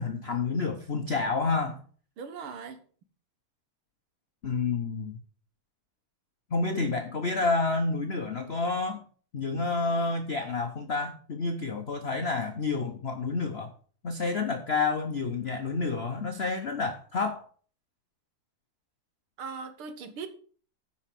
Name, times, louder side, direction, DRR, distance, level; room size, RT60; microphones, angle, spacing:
voice 1, 0.0-1.8 4.4-5.2 6.5-9.0 9.3-13.7 14.0-17.5, left 3 dB, 65° left, 0.6 m, -29 dB
voice 2, 2.2-2.8 19.4-20.3, right 5 dB, 80° right, 2.0 m, -39 dB
10.0 x 5.5 x 5.8 m
omnidirectional pair, 2.3 m